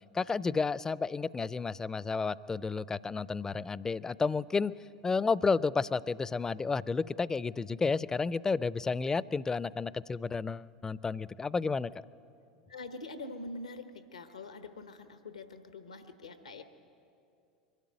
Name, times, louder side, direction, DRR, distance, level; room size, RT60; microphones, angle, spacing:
voice 1, 0.1-4.7 5.0-11.9, left 4 dB, 15° left, 20 dB, 0.4 m, -31 dB
voice 2, 12.7-16.6, left 2 dB, 90° left, 9 dB, 1.1 m, -44 dB
23.0 x 12.5 x 9.5 m, 2.6 s
hypercardioid pair, 85°, 3 cm